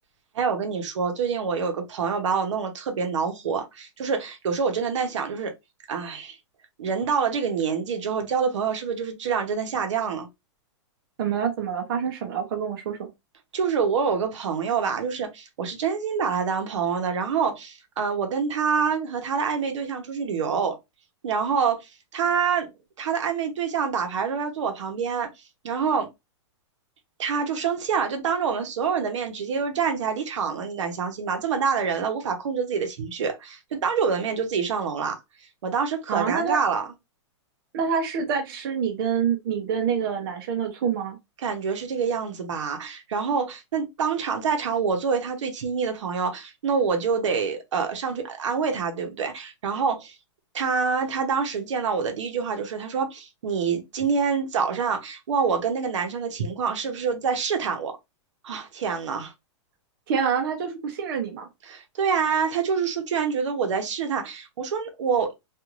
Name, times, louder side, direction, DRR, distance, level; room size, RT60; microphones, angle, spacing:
voice 1, 0.3-5.5 5.9-6.4 6.8-10.3 13.5-20.8 21.2-22.7 23.0-25.3 25.6-26.1 27.2-35.2 35.6-36.8 41.4-50.1 50.5-57.9 58.4-59.3 61.6-65.3, right 6 dB, 75° right, 0.9 m, -26 dB
voice 2, 11.2-13.1 36.1-36.6 37.7-41.2 60.1-61.5, right 7 dB, 45° right, 0.7 m, -26 dB
3.1 x 2.5 x 2.4 m
hypercardioid pair, 165°, 16 cm